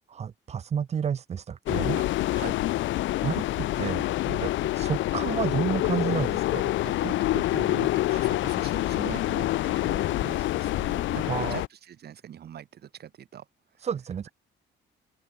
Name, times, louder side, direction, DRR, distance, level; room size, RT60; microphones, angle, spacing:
voice 1, 0.1-2.0 3.2-6.6 11.2-11.6 13.8-14.3, right 7 dB, 35° right, 0.8 m, -31 dB
sound 1, 1.7-11.7, left 16 dB, 90° left, 1.0 m, -27 dB
voice 2, 6.8-13.5 13.8-13.9, right 10 dB, 60° right, 7.4 m, -41 dB
cardioid pair, 140°, 19 cm